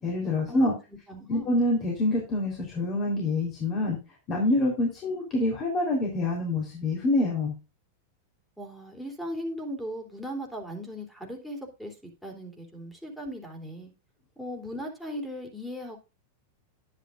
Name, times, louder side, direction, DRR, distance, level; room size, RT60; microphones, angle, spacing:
voice 1, 0.0-0.7 1.3-4.0 4.3-7.5, left 2 dB, 30° left, -1 dB, 3.8 m, -26 dB
voice 2, 1.1-1.5 8.6-11.9 12.2-13.9 14.4-16.0, equal, ahead, 2 dB, 3.4 m, -38 dB
11.0 x 10.0 x 2.5 m, 0.30 s
supercardioid pair, 135°, 0 cm